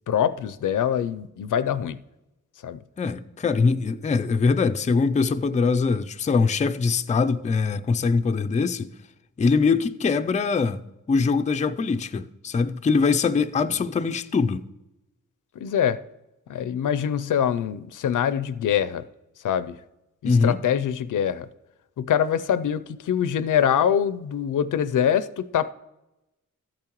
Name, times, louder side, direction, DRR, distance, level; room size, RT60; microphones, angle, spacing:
voice 1, 0.1-2.0 2.6-2.8 15.6-16.0 16.5-19.0 19.4-19.8 20.2-21.5 22.0-25.7, left 9 dB, 80° left, 0.5 m, -24 dB
voice 2, 3.0-8.9 9.4-10.8 11.1-14.6 20.2-20.6, left 4 dB, 25° left, 0.4 m, -22 dB
13.5 x 8.6 x 3.0 m
wide cardioid pair, 130°, 31 cm